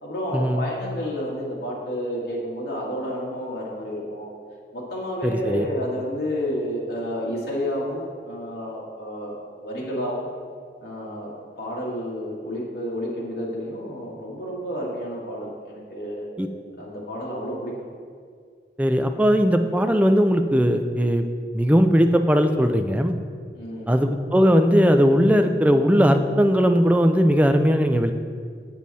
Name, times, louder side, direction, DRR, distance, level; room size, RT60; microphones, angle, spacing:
voice 1, 0.0-4.3 4.7-10.3 10.8-16.3 16.8-17.9 23.5-23.9, equal, 70° left, -5 dB, 2.0 m, -30 dB
voice 2, 5.2-5.7 16.4-16.5 18.8-21.3 21.5-23.1 23.9-28.1, equal, 10° right, 6 dB, 0.4 m, -19 dB
7.6 x 7.3 x 4.2 m, 2.1 s
head